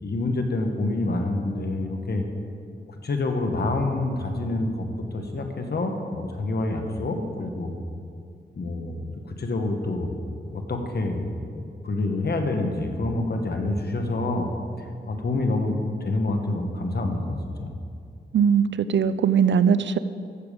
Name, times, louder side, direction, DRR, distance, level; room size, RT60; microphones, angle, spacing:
voice 1, 0.0-2.2 2.9-7.8 8.6-10.2 10.5-11.3 11.5-14.5 15.1-15.7 16.0-17.7, left 2 dB, 55° left, 4 dB, 1.2 m, -27 dB
voice 2, 18.3-20.0, right 7 dB, 70° right, 14 dB, 0.4 m, -20 dB
14.0 x 7.1 x 5.1 m, 2.4 s
wide cardioid pair, 100°, 19 cm